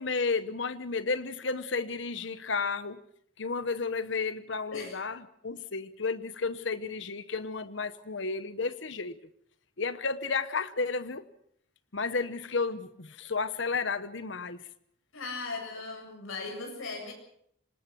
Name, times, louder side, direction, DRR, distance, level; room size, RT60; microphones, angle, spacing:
voice 1, 0.0-3.0 3.4-9.2 9.8-11.2 11.9-14.6, left 4 dB, 65° left, 13 dB, 1.0 m, -32 dB
voice 2, 4.7-5.0 15.1-17.1, left 3 dB, 85° left, 3 dB, 7.4 m, -38 dB
26.0 x 20.0 x 6.1 m, 0.68 s
head